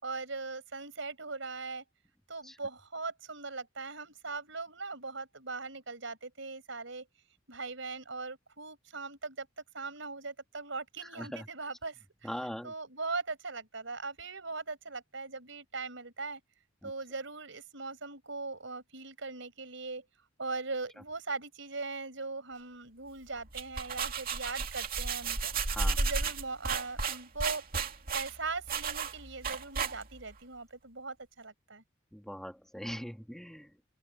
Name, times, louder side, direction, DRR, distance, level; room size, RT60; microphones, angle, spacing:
voice 1, 0.0-1.8 2.3-7.1 7.5-16.4 16.8-20.0 20.4-25.5 26.0-27.6 28.1-31.8, right 3 dB, 70° right, 6.0 m, -40 dB
voice 2, 12.2-12.7 16.8-16.9 25.7-26.0 32.1-33.7, equal, ahead, 2.8 m, -40 dB
sound 1, 23.4-30.3, right 4 dB, 50° right, 2.5 m, -33 dB
open air
head